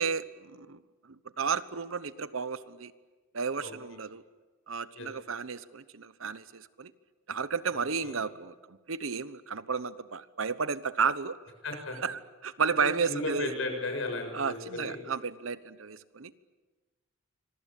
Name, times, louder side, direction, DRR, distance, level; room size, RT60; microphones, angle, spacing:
voice 1, 0.0-2.9 3.3-4.2 4.7-6.9 7.3-11.4 12.0-13.5 14.3-16.3, right 5 dB, 85° right, 15 dB, 1.0 m, -33 dB
voice 2, 11.6-12.0 12.8-15.0, left 2 dB, 75° left, 4 dB, 7.0 m, -35 dB
26.0 x 21.5 x 8.5 m, 1.3 s
head